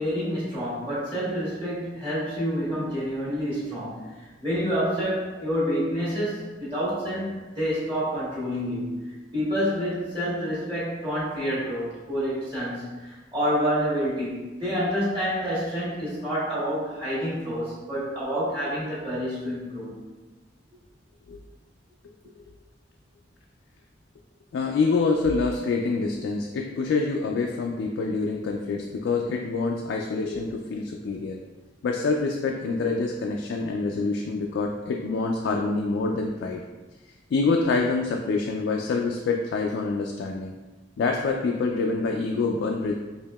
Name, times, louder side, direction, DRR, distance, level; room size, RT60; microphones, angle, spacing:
voice 1, 0.0-9.0 9.3-19.9, equal, 30° right, -10 dB, 1.4 m, -28 dB
voice 2, 24.5-31.4 31.8-36.6 37.3-40.5 41.0-42.9, left 4 dB, 80° left, 1 dB, 0.3 m, -26 dB
4.6 x 2.7 x 2.2 m, 1.3 s
head